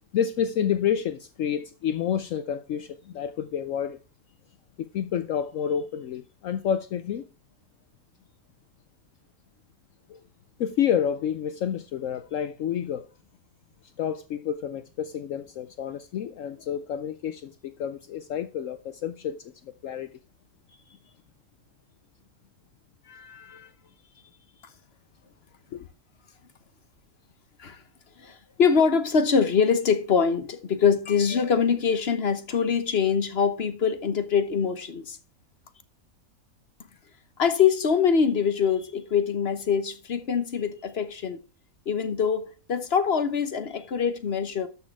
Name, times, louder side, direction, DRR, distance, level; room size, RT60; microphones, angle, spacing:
voice 1, 0.1-4.0 4.8-7.2 10.1-10.2 10.6-13.1 14.0-20.1 20.7-21.1 23.0-23.7 24.1-24.3 24.6-24.7 25.7-25.9, left 9 dB, 70° left, 1.0 m, -29 dB
voice 2, 28.2-35.2 37.4-41.4 41.9-44.7, left 6 dB, 50° left, 1.2 m, -24 dB
12.5 x 6.3 x 4.6 m
omnidirectional pair, 1.5 m